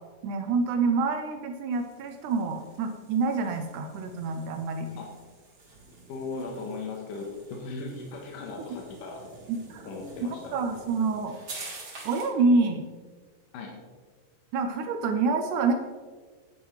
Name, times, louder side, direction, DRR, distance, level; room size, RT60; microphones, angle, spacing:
voice 1, 0.2-4.9 9.5-9.9 10.5-11.3 12.0-12.9 14.5-15.7, right 4 dB, 80° right, 6 dB, 2.1 m, -27 dB
sound 1, 1.7-12.4, right 3 dB, 40° right, 2.5 m, -48 dB
voice 2, 6.1-9.2 9.9-10.6 13.5-13.7, left 3 dB, 75° left, 0 dB, 2.7 m, -37 dB
9.9 x 9.5 x 3.2 m, 1.5 s
omnidirectional pair, 3.8 m